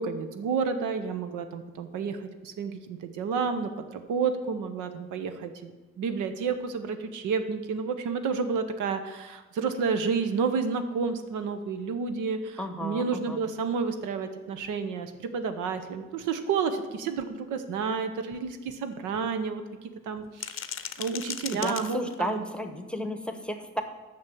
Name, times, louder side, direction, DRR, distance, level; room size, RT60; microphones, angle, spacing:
voice 1, 0.0-5.7 6.0-22.4, right 5 dB, 85° right, 9 dB, 0.9 m, -30 dB
voice 2, 12.6-13.4 21.5-23.8, equal, 5° left, 7 dB, 0.9 m, -33 dB
sound 1, 14.6-14.7 15.1-15.2 15.7-15.8 16.2-16.3 16.7-16.8 17.2-17.3 17.7-17.9 18.3-19.3 20.2-22.4, left 9 dB, 45° left, 0.6 m, -39 dB
6.7 x 6.2 x 6.8 m, 1.3 s
cardioid pair, 90°, 30 cm